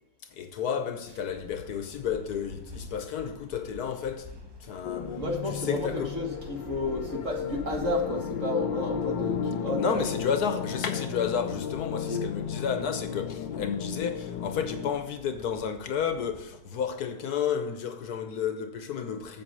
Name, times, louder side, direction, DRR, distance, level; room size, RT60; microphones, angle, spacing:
voice 1, 0.2-4.3 4.6-5.2 5.5-6.2 9.8-19.4, left 7 dB, 70° left, 1.2 m, -31 dB
sound 1, 1.1-16.8, left 1 dB, 25° right, 0.6 m, -48 dB
sound 2, 4.8-14.9, left 7 dB, 85° left, 1.4 m, -34 dB
voice 2, 5.2-10.1 12.1-12.2, left 1 dB, 45° right, 2.0 m, -31 dB
7.9 x 7.6 x 5.4 m
omnidirectional pair, 1.9 m